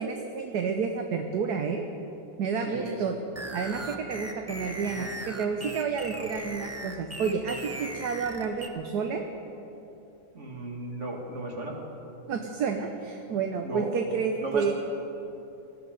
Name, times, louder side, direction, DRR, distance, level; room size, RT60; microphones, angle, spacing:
voice 1, 0.0-1.8 2.4-3.1 3.5-9.3 12.3-14.7, right 5 dB, 60° right, 4 dB, 1.3 m, -30 dB
voice 2, 2.7-3.0 6.1-6.3 10.3-11.8 13.6-13.9 14.4-14.7, right 2 dB, 35° right, 0 dB, 2.2 m, -35 dB
sound 1, 3.3-8.7, right 1 dB, 20° right, 0.4 m, -38 dB
19.5 x 13.5 x 5.2 m, 2.9 s
omnidirectional pair, 2.2 m